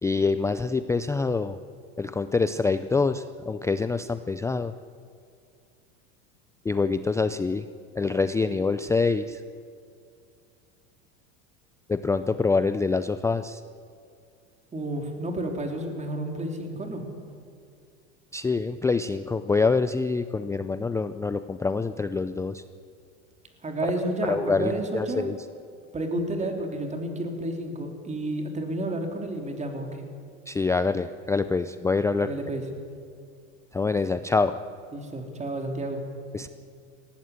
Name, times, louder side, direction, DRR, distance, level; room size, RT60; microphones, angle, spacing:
voice 1, 0.0-1.6 2.0-4.7 6.6-7.7 8.0-9.4 11.9-13.6 18.3-22.6 24.3-25.4 30.5-32.3 33.7-34.6 36.3-36.5, left 4 dB, 10° left, 11 dB, 0.4 m, -25 dB
voice 2, 14.7-17.0 23.6-25.3 25.9-30.0 32.2-32.6 34.9-36.1, right 1 dB, 20° right, 3 dB, 3.3 m, -31 dB
19.0 x 16.0 x 9.5 m, 2.4 s
supercardioid pair, 120°, 36 cm